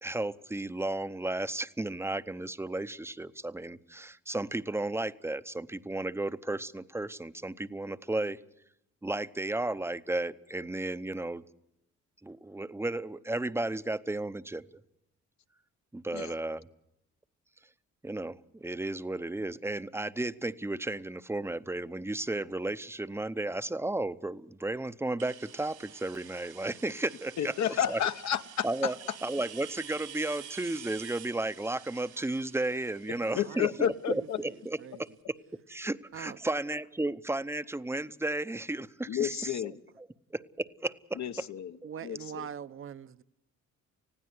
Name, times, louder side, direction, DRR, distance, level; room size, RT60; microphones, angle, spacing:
voice 1, 0.0-8.4 9.0-11.4 12.2-14.6 15.9-16.7 18.0-27.5 27.9-28.0 28.6-29.0 29.2-35.4 35.7-39.7 40.3-41.2 41.8-41.9, right 2 dB, 10° right, 0.7 m, -34 dB
sound 1, 25.2-34.8, right 10 dB, 85° right, 4.1 m, -49 dB
voice 2, 27.4-28.9 33.3-34.4 39.1-39.8 41.1-41.8 42.0-42.5, left 10 dB, 65° left, 1.0 m, -31 dB
voice 3, 33.3-35.0 36.1-36.4 41.8-43.2, right 8 dB, 45° right, 0.8 m, -44 dB
20.0 x 16.0 x 9.4 m
cardioid pair, 90°, 30 cm